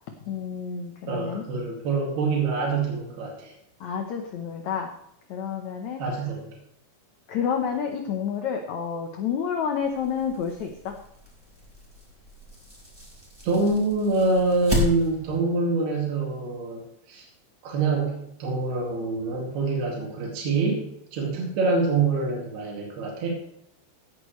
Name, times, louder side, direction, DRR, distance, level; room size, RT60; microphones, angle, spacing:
voice 1, 0.2-1.4 3.8-4.9 5.3-6.0 7.3-10.9, left 7 dB, 85° left, 4 dB, 1.6 m, -29 dB
voice 2, 1.1-3.5 6.0-6.5 13.4-16.8 17.1-17.3 17.6-20.8 21.1-23.3, right 3 dB, 75° right, -2 dB, 4.3 m, -25 dB
sound 1, 9.8-15.4, left 1 dB, 5° right, 3.6 m, -34 dB
16.5 x 9.2 x 3.2 m, 0.75 s
omnidirectional pair, 4.7 m